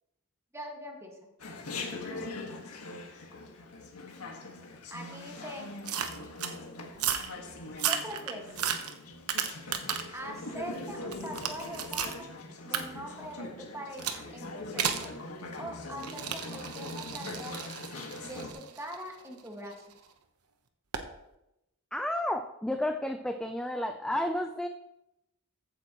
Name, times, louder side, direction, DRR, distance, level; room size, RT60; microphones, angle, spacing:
voice 1, 0.5-1.2 4.9-5.7 7.9-8.5 10.1-12.4 12.6-15.1 15.6-17.7 18.2-19.8, equal, 15° right, 1 dB, 1.7 m, -42 dB
Chatter, 1.4-18.5, left 2 dB, 85° left, 1.6 m, -42 dB
sound 1, 5.9-6.6 6.9-7.3 7.7-10.2 10.6-12.2 12.7-12.8 14.0-14.2 14.8-15.1 16.0-19.9 20.9-21.1, right 8 dB, 85° right, 1.0 m, -34 dB
voice 2, 21.9-24.7, left 1 dB, 5° left, 5 dB, 0.4 m, -31 dB
14.5 x 8.6 x 3.0 m, 0.88 s
head